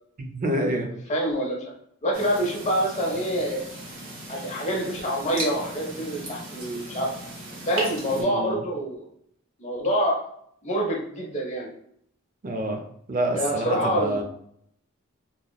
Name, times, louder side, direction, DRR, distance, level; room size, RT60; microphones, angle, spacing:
voice 1, 0.2-0.9 8.1-8.6 12.4-12.8 13.1-14.2, right 1 dB, 40° right, 3 dB, 0.4 m, -27 dB
voice 2, 1.1-1.6 2.0-3.6 4.3-7.1 7.7-9.0 9.6-10.2 10.6-11.7 13.3-14.2, equal, 35° left, -1 dB, 0.7 m, -26 dB
sound 1, 2.1-8.2, right 1 dB, 70° right, 0.9 m, -37 dB
2.8 x 2.0 x 2.2 m, 0.68 s
head